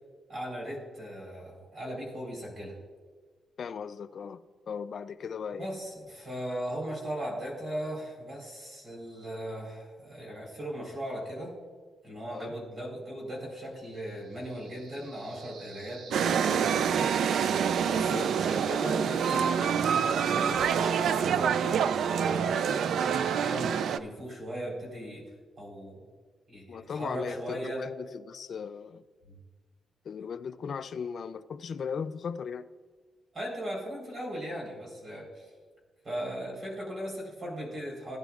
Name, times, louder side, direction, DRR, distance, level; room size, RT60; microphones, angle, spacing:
voice 1, 0.3-2.8 5.5-11.6 12.0-16.9 17.8-25.3 25.6-26.0 26.5-27.8 29.3-29.4 33.3-35.5 36.0-38.2, equal, 35° right, 3.9 m, -38 dB
voice 2, 3.6-5.7 12.3-12.5 17.9-18.3 26.7-29.0 30.0-32.7, left 6 dB, 45° left, 0.4 m, -37 dB
sound 1, 13.9-20.9, right 5 dB, 90° right, 1.1 m, -49 dB
sound 2, 16.1-24.0, right 7 dB, 65° right, 0.4 m, -26 dB
19.0 x 10.5 x 2.4 m
wide cardioid pair, 180°, 0 cm